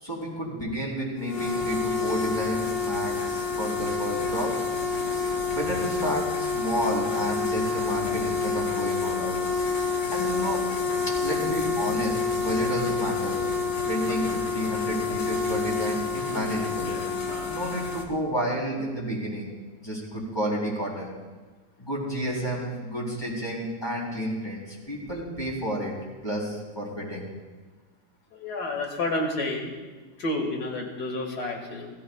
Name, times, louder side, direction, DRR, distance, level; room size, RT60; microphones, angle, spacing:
voice 1, 0.0-4.5 5.5-9.4 10.1-10.6 11.2-13.5 13.9-16.9 17.5-19.5 19.8-21.1 21.8-25.9 26.2-27.3, equal, 15° left, -4 dB, 3.5 m, -31 dB
sound 1, 1.2-18.0, left 4 dB, 90° left, 2.0 m, -28 dB
voice 2, 28.3-29.7 30.2-31.9, left 2 dB, 65° left, 1 dB, 2.5 m, -30 dB
20.0 x 14.5 x 2.3 m, 1.3 s
omnidirectional pair, 1.9 m